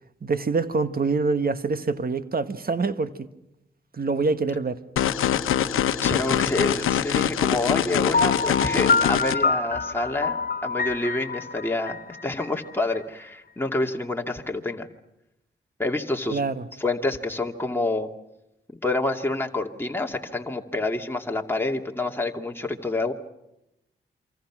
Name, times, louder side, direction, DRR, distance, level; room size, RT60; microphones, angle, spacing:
voice 1, 0.2-3.3 3.9-4.8 16.3-16.7, right 4 dB, 45° right, 1.7 m, -25 dB
sound 1, 5.0-9.3, left 10 dB, 85° left, 1.0 m, -24 dB
voice 2, 6.0-14.9 15.8-16.4 16.8-18.1 18.8-23.1, left 2 dB, 10° left, 2.5 m, -27 dB
Piano, 8.1-13.0, left 4 dB, 45° left, 1.4 m, -26 dB
27.5 x 25.5 x 6.2 m
supercardioid pair, 50°, 21 cm